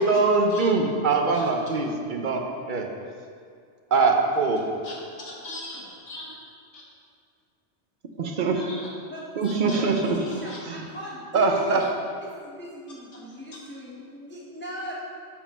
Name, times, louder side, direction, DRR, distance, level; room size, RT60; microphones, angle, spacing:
voice 1, 0.0-2.4 2.7-2.9 3.9-4.6 8.2-8.6 9.4-10.2 10.7-10.9 11.3-11.8, right 4 dB, 50° right, 3 dB, 0.7 m, -22 dB
voice 2, 4.8-6.3 6.7-6.8 8.6-8.8 9.4-10.2 10.5-10.6, left 2 dB, 90° left, -4 dB, 1.6 m, -40 dB
voice 3, 9.1-9.8 10.1-11.8 12.2-14.9, equal, 10° left, -5 dB, 0.6 m, -39 dB
5.6 x 4.8 x 5.4 m, 2.2 s
omnidirectional pair, 1.2 m